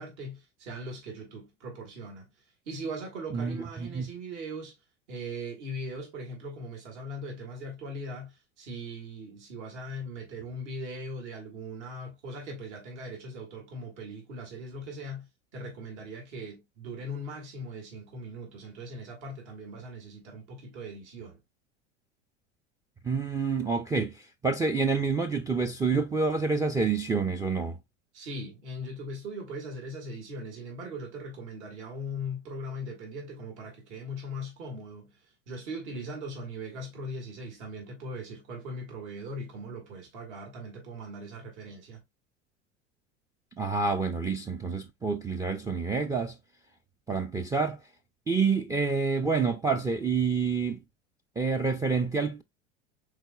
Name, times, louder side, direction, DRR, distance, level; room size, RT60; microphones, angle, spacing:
voice 1, 0.0-2.3 2.7-4.8 5.1-21.4 28.1-35.1 35.5-42.0, equal, 65° right, 1.9 m, -40 dB
voice 2, 3.3-4.1 23.0-27.8 43.6-46.4 47.1-47.8 48.3-50.8 51.4-52.4, right 4 dB, 10° right, 0.3 m, -28 dB
4.7 x 3.9 x 2.2 m
hypercardioid pair, 80°, 37 cm